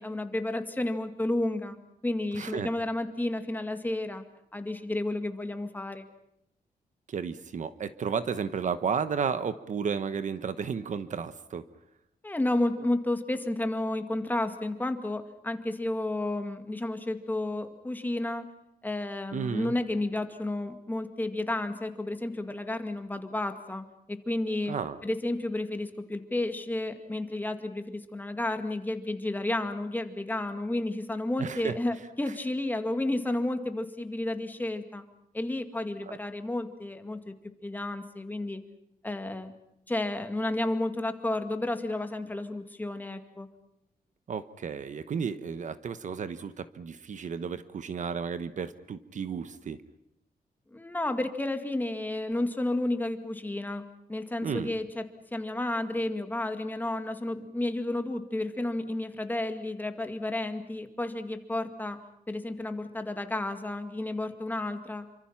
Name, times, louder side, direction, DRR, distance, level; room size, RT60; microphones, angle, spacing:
voice 1, 0.0-1.8 2.0-4.2 4.5-6.1 12.2-18.5 18.8-24.7 25.0-35.0 35.3-37.3 37.6-38.6 39.0-39.5 39.9-43.5 50.7-55.0 55.3-62.0 62.3-65.1, left 1 dB, 10° left, 7 dB, 2.1 m, -31 dB
voice 2, 2.3-2.7 7.1-11.6 19.3-19.7 24.7-25.0 31.4-31.8 36.1-36.2 44.3-49.8 54.4-54.7, right 6 dB, 50° right, 12 dB, 1.1 m, -33 dB
28.0 x 25.5 x 5.8 m, 0.80 s
wide cardioid pair, 165°, 16 cm